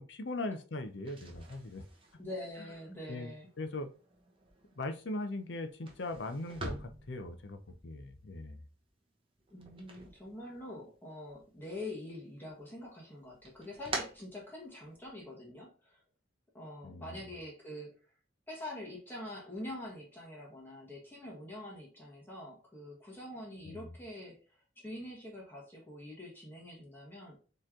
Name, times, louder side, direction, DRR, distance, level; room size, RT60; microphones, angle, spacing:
voice 1, 0.0-1.9 3.1-3.9 4.8-8.6 16.8-17.2 23.6-23.9, left 2 dB, 65° left, 0.6 m, -40 dB
sound 1, 0.9-10.9 11.3-12.1 12.5-15.1, right 2 dB, 25° right, 1.0 m, -47 dB
voice 2, 2.2-3.5 9.5-16.0 16.5-18.0 18.5-27.4, left 1 dB, 10° left, 1.4 m, -45 dB
4.4 x 3.2 x 3.7 m
head